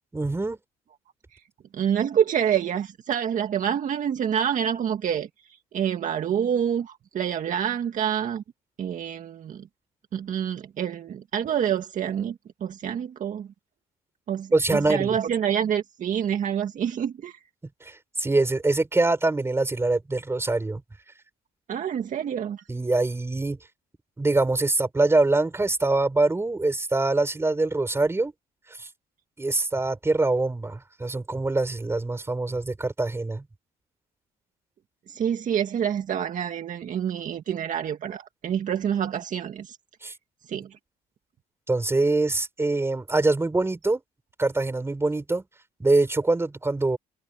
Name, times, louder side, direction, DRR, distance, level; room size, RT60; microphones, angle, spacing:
voice 1, 0.1-0.6 14.5-15.2 17.8-20.8 22.7-23.6 24.2-28.3 28.7-28.9 29.4-33.4 40.0-40.1 41.7-44.0 44.4-45.4 45.8-47.0, right 2 dB, 15° right, 4.5 m, -24 dB
voice 2, 1.7-5.3 5.7-8.4 8.8-9.6 10.1-13.5 14.3-17.4 21.7-22.6 35.1-39.8 40.5-40.7, right 9 dB, 50° right, 1.9 m, -27 dB
cardioid pair, 110°, 17 cm